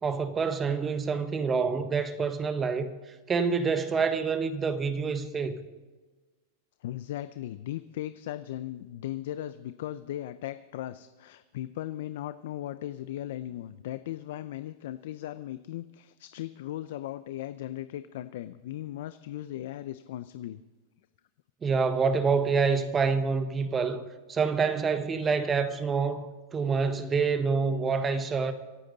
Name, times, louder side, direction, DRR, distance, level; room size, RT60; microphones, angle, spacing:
voice 1, 0.0-2.9 3.3-5.6 21.6-24.0 24.3-28.5, right 5 dB, 20° right, 1.2 m, -27 dB
voice 2, 6.8-20.6, left 13 dB, 70° left, 0.5 m, -37 dB
25.5 x 9.1 x 4.1 m
hypercardioid pair, 125°, 0 cm